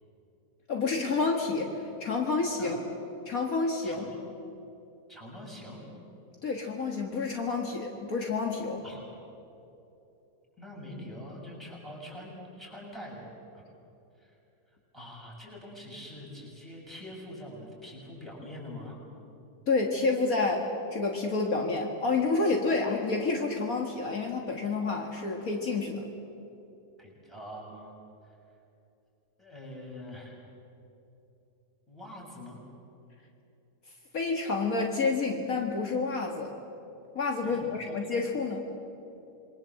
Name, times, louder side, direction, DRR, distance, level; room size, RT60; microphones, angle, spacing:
voice 1, 0.7-2.8 3.3-4.0 6.4-8.8 19.7-26.0 34.1-36.5 37.2-38.7, left 3 dB, 60° left, 2 dB, 2.2 m, -29 dB
voice 2, 3.8-4.3 5.1-5.8 8.8-9.0 10.6-13.3 13.5-13.6 14.2-14.3 14.9-19.0 27.0-27.9 28.2-28.4 29.4-30.4 31.9-32.6 37.4-38.1, left 1 dB, ahead, -4 dB, 7.1 m, -44 dB
27.5 x 22.5 x 7.6 m, 2.9 s
omnidirectional pair, 1.7 m